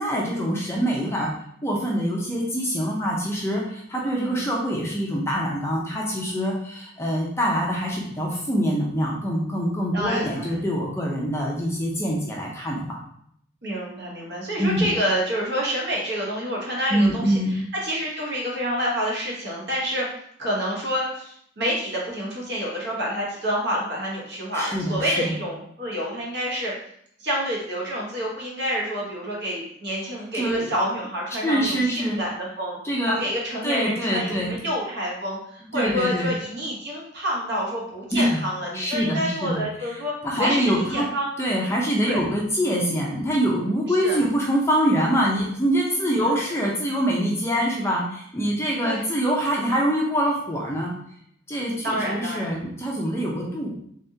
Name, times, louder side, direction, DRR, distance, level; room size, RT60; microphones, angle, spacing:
voice 1, 0.0-1.3 1.6-13.0 14.6-14.9 16.9-17.6 24.5-25.3 30.4-30.7 31.4-32.2 32.8-33.2 33.6-34.6 35.7-36.3 38.1-38.4 38.7-39.6 40.2-41.1 41.4-50.9 51.5-53.7, equal, 15° left, -3 dB, 0.6 m, -24 dB
voice 2, 4.0-4.5 9.9-10.6 13.6-20.1 20.4-26.7 27.2-32.8 33.0-40.1 40.4-41.3 42.0-42.2 44.0-44.2 45.2-45.4 46.2-46.3 48.8-49.0 51.8-52.5, equal, 55° right, -3 dB, 1.2 m, -28 dB
3.6 x 3.5 x 2.7 m, 0.68 s
head